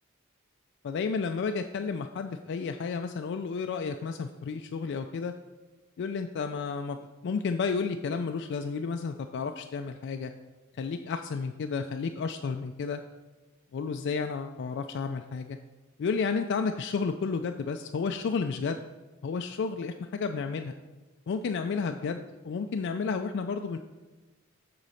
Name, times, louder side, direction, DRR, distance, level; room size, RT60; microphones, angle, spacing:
voice 1, 0.8-5.3 6.0-10.3 10.8-13.0 13.7-15.6 16.0-18.8 19.2-20.7 21.3-23.8, left 5 dB, 55° left, 6 dB, 0.3 m, -32 dB
8.1 x 3.9 x 5.6 m, 1.2 s
head